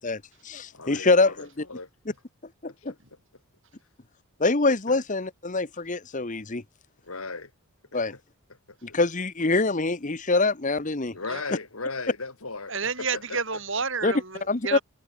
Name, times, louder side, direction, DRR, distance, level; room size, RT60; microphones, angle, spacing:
voice 1, 0.0-1.5 2.6-2.9 4.4-6.6 7.9-8.1 8.8-11.1 14.0-14.1 14.5-14.8, left 3 dB, 35° left, 1.1 m, -25 dB
voice 2, 0.7-1.9 2.7-2.9 4.9-5.0 7.0-7.5 7.9-8.0 8.9-9.0 11.1-12.7 13.0-13.4, left 3 dB, 70° left, 3.2 m, -36 dB
voice 3, 11.1-11.4 12.7-14.8, right 5 dB, 55° right, 6.6 m, -30 dB
head